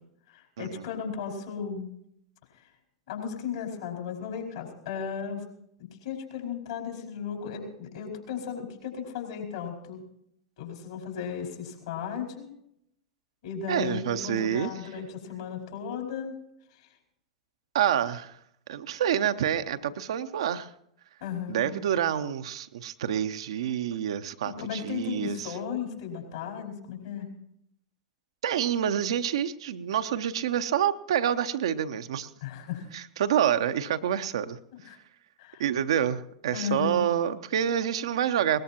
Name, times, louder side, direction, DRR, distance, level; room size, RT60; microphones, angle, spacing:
voice 1, 0.3-1.9 2.5-2.7 3.1-5.4 5.8-10.0 10.6-12.5 13.4-16.3 16.7-16.9 21.2-21.7 24.4-27.3 32.4-32.9 34.7-35.0 35.4-35.6 36.5-37.0, left 7 dB, 60° left, 1 dB, 4.7 m, -35 dB
voice 2, 13.7-14.7 17.7-18.4 18.7-20.7 21.5-25.5 28.4-32.3 32.9-34.6 35.6-38.6, right 9 dB, 60° right, 9 dB, 0.8 m, -27 dB
21.0 x 19.5 x 2.9 m, 0.75 s
figure-of-eight pair, 90°, 3 cm